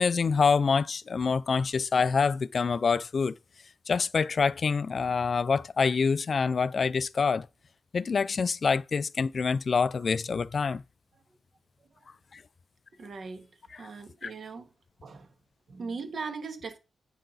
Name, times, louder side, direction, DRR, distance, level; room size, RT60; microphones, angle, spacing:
voice 1, 0.0-3.3 3.9-7.5 7.9-10.8 12.3-12.4 13.7-13.8 14.2-14.3, left 5 dB, 50° left, 0.4 m, -26 dB
voice 2, 13.0-13.5 13.8-14.7 15.0-15.3 15.7-16.8, right 4 dB, 60° right, 1.8 m, -39 dB
9.1 x 5.7 x 3.9 m
cardioid pair, 85°, 0 cm